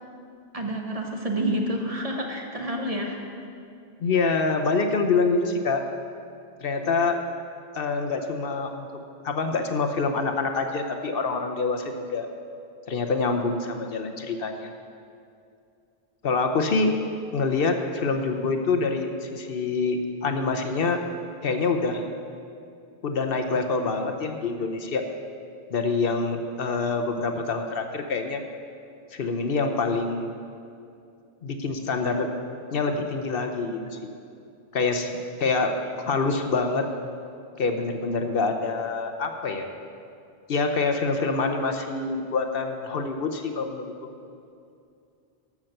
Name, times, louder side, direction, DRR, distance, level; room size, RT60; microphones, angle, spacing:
voice 1, 0.5-3.2, right 1 dB, 35° right, 1 dB, 1.2 m, -28 dB
voice 2, 4.0-5.8 6.6-7.2 7.7-8.9 9.2-12.3 12.9-14.7 16.2-16.9 17.3-21.0 21.4-22.1 23.0-25.0 25.7-28.4 29.1-30.3 31.4-32.3 32.7-34.0 34.7-35.1 35.4-35.7 36.1-36.8 37.6-39.7 40.5-43.8, left 4 dB, 65° left, 5 dB, 1.0 m, -26 dB
13.5 x 6.1 x 6.6 m, 2.5 s
omnidirectional pair, 1.0 m